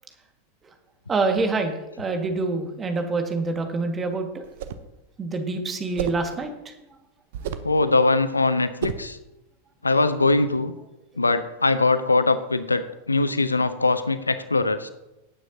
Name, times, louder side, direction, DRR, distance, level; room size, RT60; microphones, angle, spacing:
voice 1, 1.1-4.4 5.2-6.5, right 3 dB, 20° right, 5 dB, 1.8 m, -26 dB
sound 1, 4.4-4.9 6.0-6.3 7.3-7.8 8.8-9.1, right 8 dB, 55° right, 0.8 m, -31 dB
voice 2, 7.6-9.2 9.8-10.7 11.2-14.9, left 3 dB, 80° left, 13 dB, 0.6 m, -22 dB
18.0 x 9.2 x 2.8 m, 0.94 s
figure-of-eight pair, 90°, 0 cm